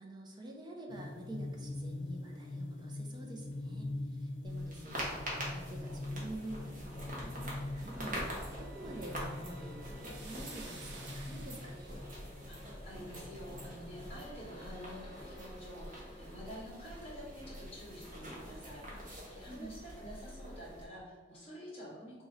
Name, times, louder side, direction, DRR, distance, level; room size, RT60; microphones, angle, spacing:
voice 1, 0.0-12.0 19.5-19.8, right 1 dB, 25° right, 1 dB, 0.6 m, -48 dB
sound 1, 0.9-14.7, left 2 dB, 75° left, 0.7 m, -44 dB
sound 2, 4.5-20.8, equal, 45° right, 1.1 m, -45 dB
sound 3, 7.5-12.1, right 3 dB, 70° right, 0.8 m, -54 dB
voice 2, 12.5-22.2, equal, 30° left, -5 dB, 1.5 m, -49 dB
3.8 x 3.0 x 3.9 m, 1.3 s
head